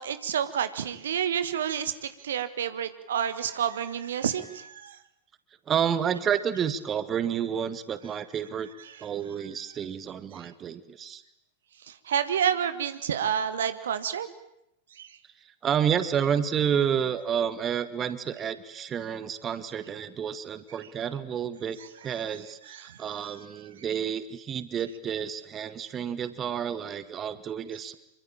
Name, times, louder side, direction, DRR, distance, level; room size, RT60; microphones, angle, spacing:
voice 1, 0.0-5.0 8.9-9.0 10.3-10.5 11.8-14.3 14.9-15.2 22.7-23.0, right 8 dB, 65° right, 12 dB, 1.6 m, -29 dB
voice 2, 5.7-8.7 9.0-11.2 15.6-21.8 22.0-28.0, right 8 dB, 25° right, 13 dB, 1.8 m, -30 dB
27.0 x 24.5 x 9.0 m, 0.79 s
figure-of-eight pair, 90°, 0 cm